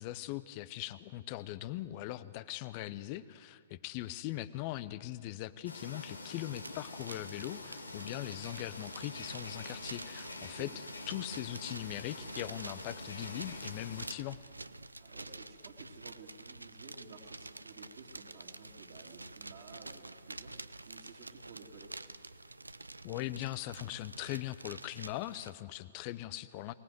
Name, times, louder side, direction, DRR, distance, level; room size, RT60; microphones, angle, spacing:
voice 1, 0.0-10.7 11.1-14.4 23.0-26.7, left 15 dB, 35° left, 15 dB, 0.8 m, -40 dB
sound 1, 5.6-14.1, left 2 dB, 80° left, 2.1 m, -46 dB
sound 2, 6.5-25.5, right 2 dB, 80° right, 0.6 m, -48 dB
voice 2, 10.4-10.8 15.0-20.5 20.8-22.1, right 4 dB, 50° right, -5 dB, 2.8 m, -53 dB
23.5 x 19.0 x 7.8 m, 2.2 s
figure-of-eight pair, 115°, 0 cm